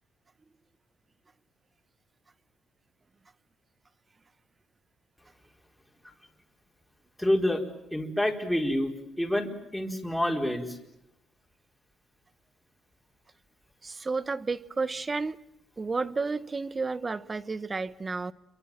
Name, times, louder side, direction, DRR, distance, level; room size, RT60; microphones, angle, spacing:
voice 1, 7.2-7.6 7.9-10.8, left 1 dB, 5° left, 4.5 m, -28 dB
voice 2, 13.8-15.4 15.8-18.3, right 4 dB, 30° right, 1.0 m, -31 dB
28.5 x 23.0 x 7.4 m
cardioid pair, 90°, 0 cm